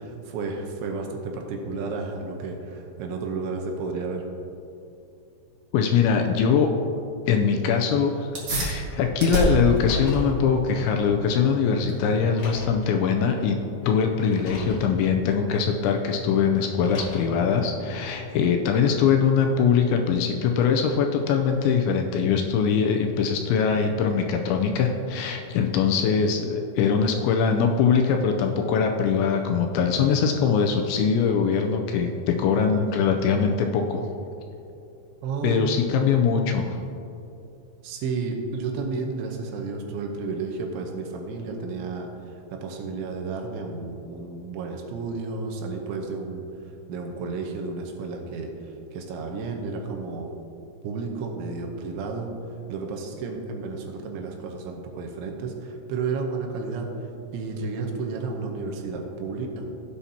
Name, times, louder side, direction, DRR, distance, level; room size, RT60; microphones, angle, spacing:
voice 1, 0.0-4.3 35.2-35.6 37.8-46.5 46.9-50.3 50.8-52.3 52.7-59.7, right 4 dB, 80° right, 2 dB, 3.2 m, -32 dB
voice 2, 5.7-6.7 7.3-13.6 13.8-34.0 35.4-36.8, left 6 dB, 80° left, 4 dB, 2.8 m, -22 dB
sound 1, 8.3-18.3, right 1 dB, 55° right, 1.4 m, -33 dB
Car, 9.6-10.4 11.5-11.6 12.3-12.9 14.2-14.9 16.7-17.4, left 2 dB, 50° left, 3.3 m, -36 dB
16.5 x 8.3 x 2.9 m, 2.7 s
omnidirectional pair, 5.6 m